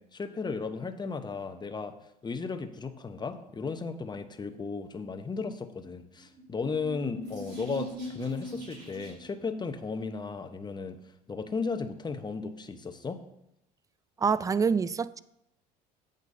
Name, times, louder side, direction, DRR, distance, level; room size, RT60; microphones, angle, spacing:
voice 1, 0.0-1.9 2.2-11.0 11.3-13.2, left 4 dB, 20° left, 8 dB, 0.9 m, -35 dB
sound 1, 6.2-9.4, equal, 75° right, 2.8 m, -41 dB
voice 2, 14.2-15.2, right 5 dB, 15° right, 17 dB, 0.3 m, -26 dB
15.0 x 5.3 x 2.7 m, 0.81 s
hypercardioid pair, 65°, 21 cm